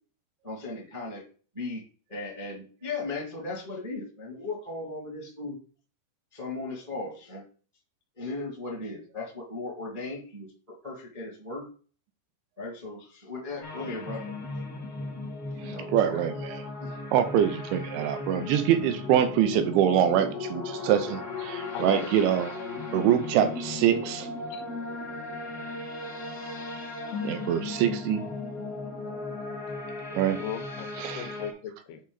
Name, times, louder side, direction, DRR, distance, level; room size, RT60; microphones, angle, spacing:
voice 1, 0.4-1.2 1.5-1.8 2.1-5.6 6.3-7.4 8.1-11.7 12.6-14.2 15.6-16.4 16.8-17.0, left 3 dB, 20° right, -3 dB, 1.0 m, -37 dB
sound 1, 13.6-31.5, left 3 dB, 50° left, 1.1 m, -36 dB
voice 2, 15.7-16.6 17.1-22.5 22.9-24.3 27.2-28.2 30.1-30.4 31.0-31.3, right 10 dB, 80° right, 8 dB, 3.1 m, -25 dB
voice 3, 21.7-22.1 24.5-24.6 26.4-26.5 27.1-27.2 30.4-32.0, left 9 dB, 75° left, 7 dB, 2.5 m, -38 dB
8.7 x 5.5 x 4.1 m, 0.40 s
omnidirectional pair, 5.4 m